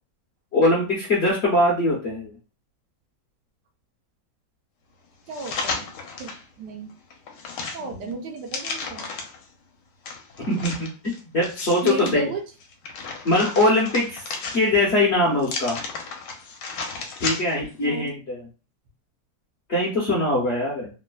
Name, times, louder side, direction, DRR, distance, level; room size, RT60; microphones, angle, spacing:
voice 1, 0.5-2.3 10.4-12.2 13.2-14.3 14.5-15.8 17.2-18.5 19.7-20.9, left 1 dB, 55° left, -5 dB, 0.8 m, -22 dB
sound 1, 5.3-6.4 6.9-9.4 10.1-12.1 12.6-14.9 15.4-17.7 18.1-18.2, left 4 dB, 80° left, 1.2 m, -33 dB
voice 2, 5.3-5.9 6.2-6.9 7.7-9.0 11.8-12.4 17.8-18.1, right 4 dB, 75° right, 4 dB, 1.1 m, -33 dB
3.1 x 2.0 x 2.2 m, 0.33 s
omnidirectional pair, 1.9 m